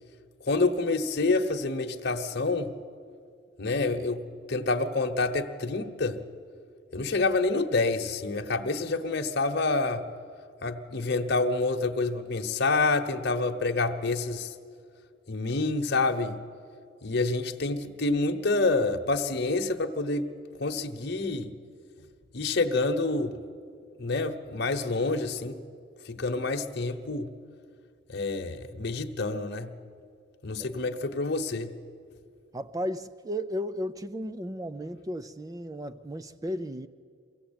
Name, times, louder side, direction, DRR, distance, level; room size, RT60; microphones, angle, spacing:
voice 1, 0.4-2.8 3.6-6.2 6.9-10.1 10.6-14.6 15.3-16.4 17.0-20.3 20.6-21.6 22.3-23.4 24.0-25.6 26.0-27.3 28.1-29.7 30.4-31.8, left 3 dB, 55° left, 4 dB, 1.1 m, -28 dB
voice 2, 32.5-36.9, equal, 20° right, 11 dB, 0.5 m, -34 dB
23.0 x 16.0 x 8.8 m, 2.2 s
head